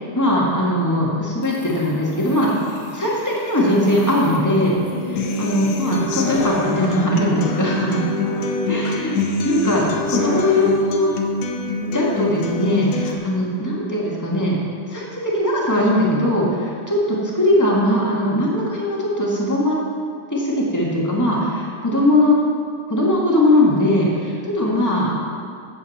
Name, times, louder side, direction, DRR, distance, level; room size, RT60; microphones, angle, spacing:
voice 1, 0.1-2.5 2.9-4.7 5.4-8.0 8.7-11.1 11.8-14.6 14.9-19.8 20.3-22.4 22.9-25.2, left 1 dB, 15° left, -4 dB, 0.7 m, -20 dB
sound 1, 1.4-6.7, left 2 dB, 55° left, 2.1 m, -37 dB
Human voice / Acoustic guitar, 5.2-13.1, left 2 dB, 85° left, 2.4 m, -25 dB
15.0 x 7.6 x 4.2 m, 2.2 s
omnidirectional pair, 3.5 m